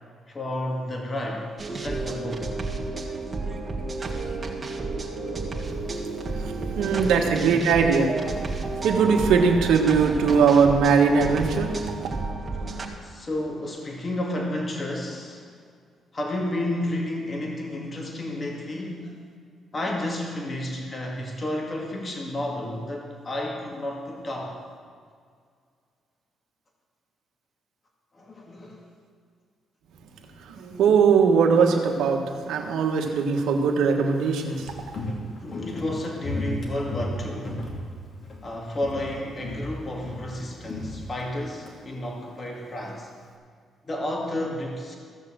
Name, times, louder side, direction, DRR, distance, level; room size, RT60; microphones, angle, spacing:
voice 1, 0.3-2.5 6.5-7.0 12.5-15.5 16.1-19.2 19.7-24.6 28.1-28.9 35.4-37.6 38.4-43.1 43.8-45.0, left 1 dB, 35° left, -1 dB, 2.2 m, -31 dB
sound 1, 1.6-12.9, right 3 dB, 30° right, 1.8 m, -31 dB
voice 2, 6.3-12.1 30.4-34.7, right 5 dB, 85° right, 2 dB, 1.5 m, -21 dB
Walk footsteps, 34.2-38.5 38.8-39.1 39.4-41.7 42.0-42.1, left 1 dB, 50° left, 2.7 m, -34 dB
15.0 x 6.8 x 7.6 m, 2.1 s
cardioid pair, 90°, 0 cm